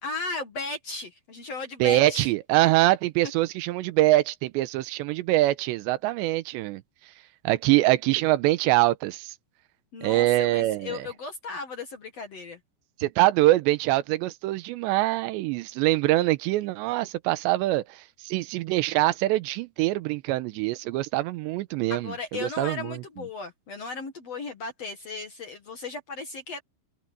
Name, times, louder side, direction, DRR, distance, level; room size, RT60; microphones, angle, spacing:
voice 1, 0.0-2.3 9.9-12.6 21.9-26.6, left 3 dB, 50° left, 2.0 m, -36 dB
voice 2, 1.8-6.8 7.4-9.3 10.0-11.1 13.0-22.1 22.4-23.0, right 17 dB, 90° right, 3.0 m, -24 dB
omnidirectional pair, 5.1 m